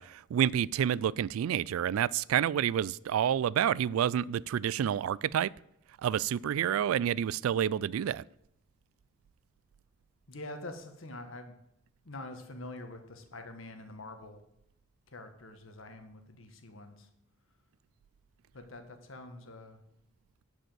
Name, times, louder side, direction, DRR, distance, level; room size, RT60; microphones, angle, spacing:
voice 1, 0.0-5.5 6.0-8.2, right 9 dB, 80° right, 0.3 m, -29 dB
voice 2, 10.3-11.5 12.0-14.4 15.1-17.1 18.5-19.8, left 2 dB, 70° left, 1.4 m, -45 dB
11.0 x 5.1 x 7.7 m
head